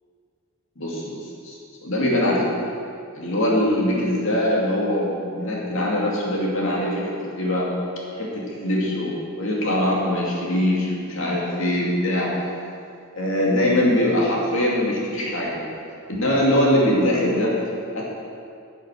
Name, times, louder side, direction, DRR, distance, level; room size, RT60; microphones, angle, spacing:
voice 1, 0.8-1.6 1.8-2.5 3.1-7.7 8.2-12.3 13.1-15.6 16.1-17.5 17.9-18.0, left 1 dB, 65° left, -4 dB, 2.6 m, -22 dB
10.5 x 7.1 x 6.2 m, 2.4 s
head